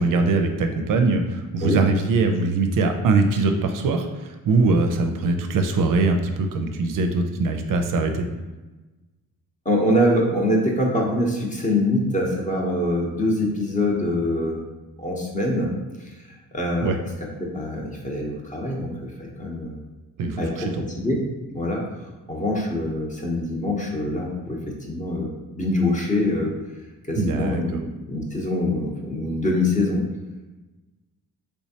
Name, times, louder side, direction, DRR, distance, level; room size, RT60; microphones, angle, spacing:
voice 1, 0.0-8.3 16.8-17.0 20.2-20.8 27.2-27.8, right 3 dB, 60° right, 5 dB, 0.5 m, -22 dB
voice 2, 9.6-14.6 15.0-15.7 16.0-16.9 17.4-19.8 20.4-21.2 21.5-26.5 27.1-30.0, left 1 dB, 20° left, -1 dB, 0.8 m, -24 dB
3.4 x 3.1 x 2.8 m, 1.2 s
cardioid pair, 80°, 36 cm